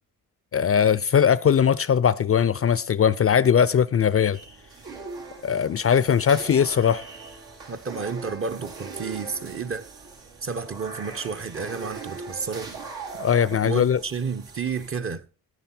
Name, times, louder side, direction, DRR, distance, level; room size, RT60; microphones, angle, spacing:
voice 1, 0.5-4.4 5.4-7.0 13.2-14.0, left 8 dB, 40° left, 0.5 m, -20 dB
sound 1, 4.3-14.9, right 4 dB, 80° right, 2.8 m, -40 dB
voice 2, 7.7-9.9 10.4-12.7 13.5-15.3, right 5 dB, 35° right, 0.8 m, -31 dB
9.8 x 9.4 x 4.3 m
cardioid pair, 75°, 38 cm